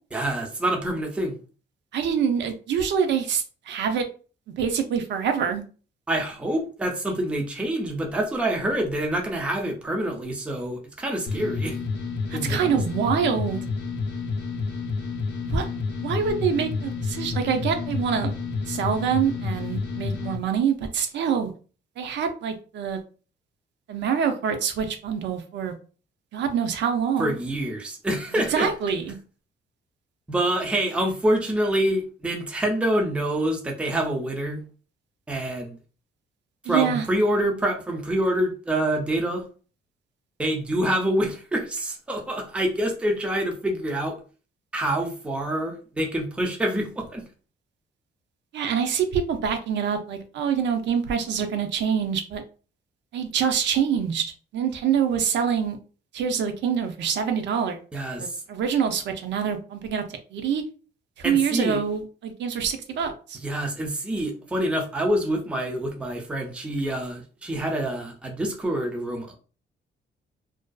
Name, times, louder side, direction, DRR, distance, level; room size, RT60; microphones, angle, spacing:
voice 1, 0.1-1.4 6.1-11.8 12.3-12.8 27.2-28.7 30.3-34.6 35.3-35.8 36.6-39.4 40.4-44.2 44.7-47.2 57.9-58.4 61.2-61.8 63.4-69.3, right 1 dB, 5° right, 2 dB, 0.4 m, -26 dB
voice 2, 1.9-4.1 4.6-5.6 12.3-13.6 15.4-15.7 16.0-18.3 18.7-21.5 22.0-23.0 23.9-25.7 26.3-27.4 28.5-29.2 36.7-37.0 48.5-52.4 53.1-54.3 54.5-55.8 56.1-57.8 58.2-60.6 61.2-63.4, right 7 dB, 70° right, 6 dB, 0.5 m, -25 dB
sound 1, 11.3-20.4, left 4 dB, 65° left, 0.5 m, -30 dB
2.5 x 2.3 x 2.2 m, 0.37 s
cardioid pair, 155°, 19 cm